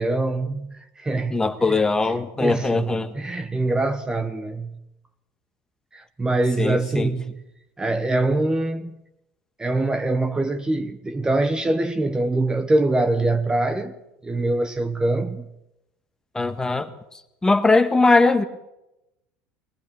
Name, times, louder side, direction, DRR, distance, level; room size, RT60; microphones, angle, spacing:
voice 1, 0.0-4.8 5.9-7.4 7.8-9.0 9.6-14.0 14.2-15.5, right 2 dB, 15° right, 1.3 m, -24 dB
voice 2, 1.3-3.1 6.6-7.1 16.3-16.9 17.4-18.4, left 3 dB, 15° left, 1.8 m, -20 dB
21.5 x 19.0 x 7.1 m
supercardioid pair, 105°, 5 cm